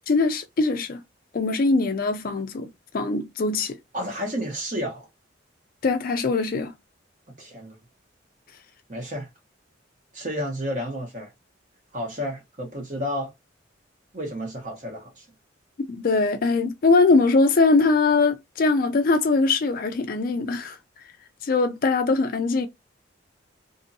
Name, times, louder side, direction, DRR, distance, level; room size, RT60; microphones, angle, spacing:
voice 1, 0.1-1.0 1.3-2.7 2.9-3.8 5.8-6.7 15.9-20.8 21.4-22.7, left 3 dB, 45° left, 0.4 m, -21 dB
voice 2, 3.9-5.1 7.4-7.8 8.9-9.3 10.1-11.3 11.9-13.3 14.1-15.2, equal, 40° right, 1.0 m, -31 dB
2.6 x 2.6 x 2.6 m
head